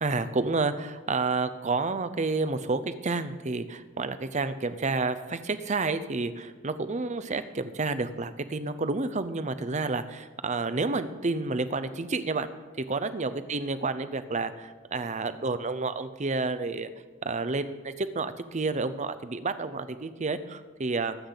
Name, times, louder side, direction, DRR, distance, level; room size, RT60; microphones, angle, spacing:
voice 1, 0.0-12.5 12.8-16.9 17.2-21.1, right 3 dB, 35° right, 11 dB, 0.7 m, -30 dB
21.5 x 8.5 x 4.0 m, 1.4 s
head